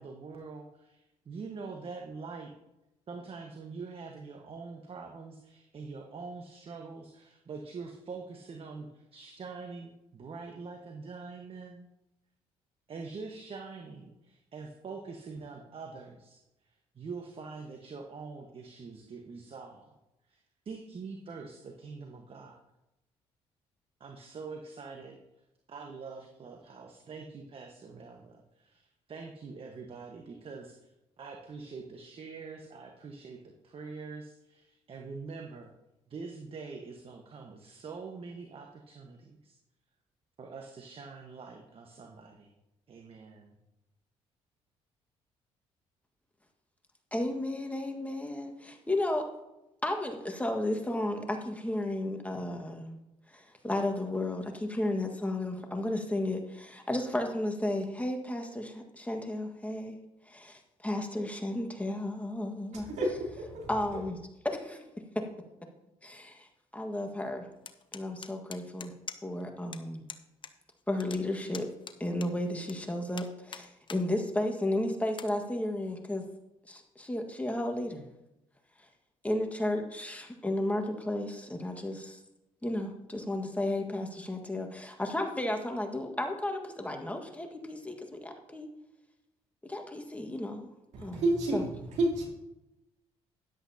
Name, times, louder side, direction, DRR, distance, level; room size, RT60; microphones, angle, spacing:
voice 1, 0.0-2.5 3.1-11.9 12.9-16.4 16.7-20.0 20.3-20.4 20.6-22.6 24.0-25.2 25.7-28.8 29.1-30.9 31.2-35.7 36.1-39.6 40.4-42.5 42.9-43.6, right 4 dB, 45° right, 3 dB, 1.3 m, -44 dB
voice 2, 47.1-49.3 49.8-53.0 53.3-60.0 60.3-62.9 63.7-64.2 64.4-64.8 66.0-66.5 66.7-67.5 67.9-68.9 69.2-70.0 70.9-71.7 72.0-76.2 76.6-78.0 78.8-78.9 79.2-82.2 82.6-88.7 89.6-90.7 91.0-91.2 91.5-91.6, left 1 dB, 10° left, 3 dB, 1.6 m, -33 dB
voice 3, 62.7-63.7 90.9-91.7 92.0-92.3, right 1 dB, 70° right, -1 dB, 3.4 m, -30 dB
sound 1, 67.7-69.4 69.7-69.8 70.1-70.5 70.8-72.7 73.1-74.0 74.5-74.6 75.1-75.3, left 6 dB, 40° left, 0.9 m, -44 dB
13.0 x 10.5 x 2.8 m, 0.94 s
supercardioid pair, 65°, 13 cm